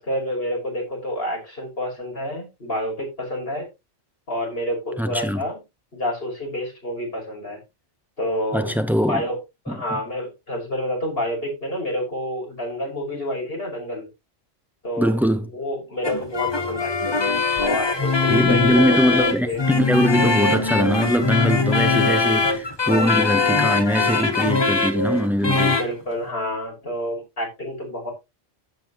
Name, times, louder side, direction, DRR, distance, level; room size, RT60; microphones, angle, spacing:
voice 1, 0.0-3.7 4.3-5.6 5.9-7.6 8.2-8.8 9.1-9.4 9.7-14.1 14.8-15.2 15.5-17.2 17.6-19.6 25.6-28.1, left 1 dB, 50° left, 5.6 m, -28 dB
voice 2, 5.0-5.4 8.5-9.2 9.7-10.0 15.0-15.5 18.3-25.8, equal, ahead, 1.0 m, -22 dB
sound 1, 16.0-25.9, left 4 dB, 25° left, 0.9 m, -21 dB
15.5 x 5.6 x 3.0 m
omnidirectional pair, 1.2 m